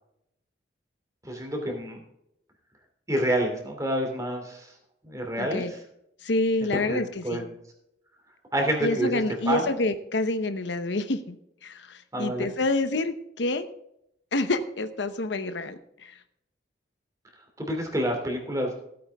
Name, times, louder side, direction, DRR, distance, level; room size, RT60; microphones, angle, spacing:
voice 1, 1.2-2.0 3.1-4.7 5.0-5.7 6.7-7.5 8.5-9.7 12.1-12.5 17.6-18.7, right 1 dB, 15° right, 2 dB, 2.7 m, -28 dB
voice 2, 5.4-5.7 6.2-7.4 8.8-11.4 11.6-13.7 14.3-16.2, left 2 dB, 70° left, 10 dB, 0.9 m, -28 dB
16.0 x 8.8 x 3.5 m, 0.77 s
head